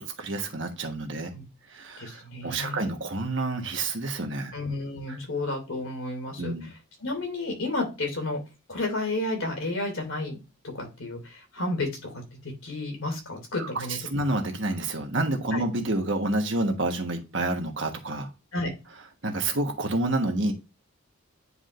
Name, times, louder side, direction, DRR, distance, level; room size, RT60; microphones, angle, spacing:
voice 1, 0.2-1.3 1.7-4.5 5.1-5.2 6.4-6.7 13.6-18.3 19.2-20.5, right 2 dB, 60° right, 4 dB, 1.3 m, -29 dB
voice 2, 2.0-2.9 4.5-6.5 7.0-8.4 8.7-10.4 10.7-12.1 12.6-14.0 15.5-15.6 18.5-18.7, left 2 dB, 70° left, 2 dB, 2.6 m, -31 dB
9.5 x 4.9 x 2.5 m, 0.27 s
head